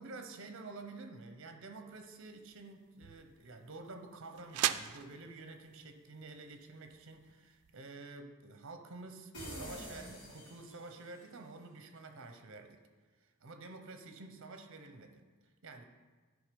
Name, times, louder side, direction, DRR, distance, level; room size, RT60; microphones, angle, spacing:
voice 1, 0.0-12.8 13.2-15.8, right 3 dB, 60° right, 6 dB, 0.8 m, -50 dB
sound 1, 1.9-7.8, right 12 dB, 90° right, 0.3 m, -42 dB
sound 2, 9.3-11.2, equal, 55° left, 2.5 m, -46 dB
10.5 x 3.8 x 5.2 m, 1.4 s
head